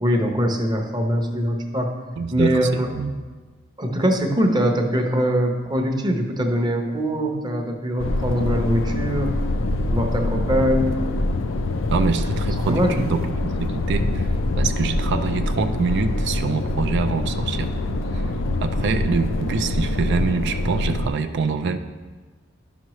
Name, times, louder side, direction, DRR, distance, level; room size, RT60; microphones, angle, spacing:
voice 1, 0.0-1.9 2.3-2.9 3.8-9.3 9.9-11.0 12.7-13.0, equal, 20° right, 3 dB, 0.8 m, -22 dB
voice 2, 2.2-3.1 11.9-17.7 18.1-18.3 18.6-21.8, right 5 dB, 60° right, 8 dB, 0.4 m, -25 dB
sound 1, 8.0-21.1, left 2 dB, 80° left, 0.5 m, -24 dB
11.0 x 6.0 x 3.1 m, 1.3 s
head